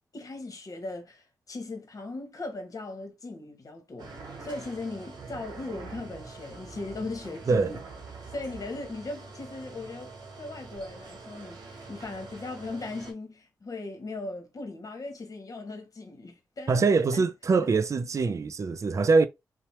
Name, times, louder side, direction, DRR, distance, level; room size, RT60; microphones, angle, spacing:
voice 1, 0.1-7.8 8.3-16.8 17.1-17.3, left 2 dB, 55° left, 1.1 m, -38 dB
sound 1, 4.0-13.1, right 3 dB, 75° right, 0.8 m, -45 dB
voice 2, 16.7-19.3, right 4 dB, 45° right, 0.4 m, -23 dB
2.8 x 2.1 x 2.9 m
supercardioid pair, 45°, 7 cm